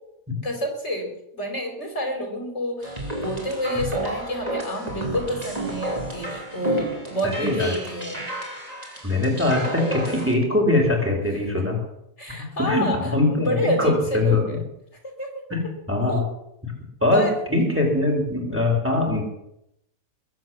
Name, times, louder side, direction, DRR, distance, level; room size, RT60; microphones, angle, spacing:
voice 1, 0.4-8.3 12.2-13.0 13.3-14.6 15.2-15.4 16.1-16.2 17.1-17.3, equal, 45° left, 3 dB, 4.0 m, -28 dB
sound 1, 2.8-10.3, right 1 dB, 25° right, 3.5 m, -31 dB
voice 2, 7.2-7.7 9.0-11.8 12.4-14.6 15.5-16.2 16.6-16.7 17.0-19.2, left 2 dB, 10° right, 1 dB, 3.8 m, -22 dB
21.5 x 8.0 x 7.7 m, 0.80 s
omnidirectional pair, 1.6 m